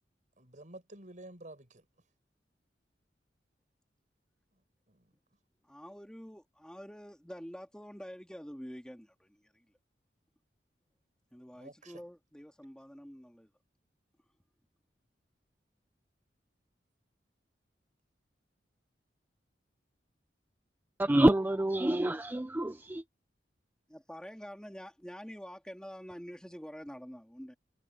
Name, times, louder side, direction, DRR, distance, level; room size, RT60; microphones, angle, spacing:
voice 1, 0.4-1.9 4.9-5.1 11.5-12.0, right 2 dB, 45° right, 6.4 m, -51 dB
voice 2, 5.6-9.7 11.3-13.5 23.9-27.6, equal, 5° left, 2.0 m, -47 dB
voice 3, 21.0-23.0, right 1 dB, 10° right, 0.4 m, -27 dB
head